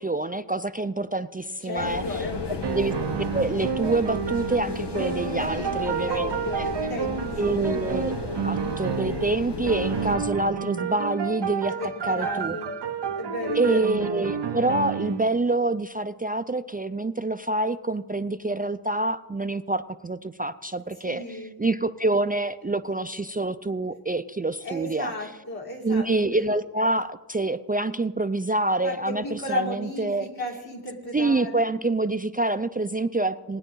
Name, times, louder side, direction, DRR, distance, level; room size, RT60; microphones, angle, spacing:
voice 1, 0.0-2.2 2.7-2.9 3.3-6.3 6.6-6.7 7.4-11.7 12.0-12.6 13.5-25.1 25.8-30.3 31.1-33.6, right 2 dB, 20° right, 10 dB, 0.4 m, -26 dB
voice 2, 1.6-2.6 5.5-7.6 11.7-12.7 13.1-13.9 21.0-21.5 24.6-26.1 28.8-31.7, left 1 dB, 65° left, -4 dB, 3.5 m, -34 dB
sound 1, 1.8-10.2, left 3 dB, 90° left, 1.0 m, -33 dB
sound 2, 2.1-9.4 9.7-15.3, right 7 dB, 90° right, 0.7 m, -30 dB
19.5 x 9.8 x 3.8 m, 1.2 s
wide cardioid pair, 50°, 40 cm